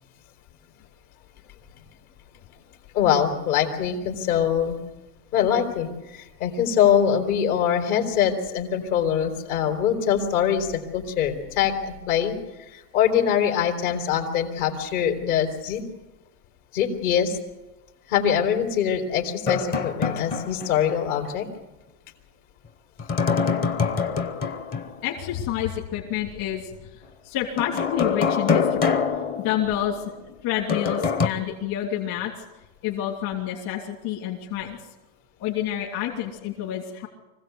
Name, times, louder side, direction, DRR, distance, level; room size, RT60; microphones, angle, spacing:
voice 1, 2.9-4.8 5.3-12.4 12.7-15.8 16.7-17.4 18.1-21.5, left 9 dB, 60° left, 4 dB, 3.9 m, -23 dB
sound 1, 19.5-21.0 21.3-21.4 23.0-25.0 27.6-30.1 30.7-31.3, left 5 dB, 20° left, 0.7 m, -25 dB
voice 2, 25.0-29.0 29.4-30.1 30.4-32.3 32.8-34.8 35.4-37.1, left 11 dB, 45° left, -2 dB, 3.2 m, -28 dB
25.0 x 16.5 x 8.1 m, 1.1 s
supercardioid pair, 165°, 49 cm